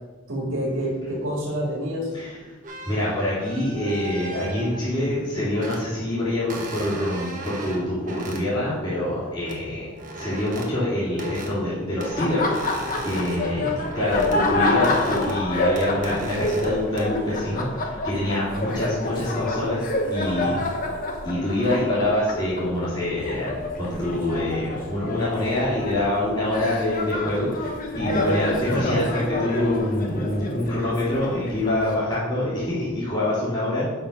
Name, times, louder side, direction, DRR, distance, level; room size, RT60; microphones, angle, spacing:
voice 1, 0.3-2.1 18.6-18.8 20.4-20.5, equal, 70° right, -3 dB, 2.0 m, -28 dB
sound 1, 2.6-5.1 5.5-5.9 6.5-8.4 9.4-9.6 9.9-10.7 11.2-11.6 12.0-14.4 14.7-15.4 15.7-16.7 17.0-17.3, right 2 dB, 40° right, 1.2 m, -37 dB
voice 2, 2.9-12.5 13.0-20.8 21.2-33.9, left 1 dB, 25° left, -11 dB, 2.8 m, -25 dB
Laughter, 12.1-31.9, left 2 dB, 40° left, 0.9 m, -28 dB
6.8 x 5.8 x 5.3 m, 1.3 s
head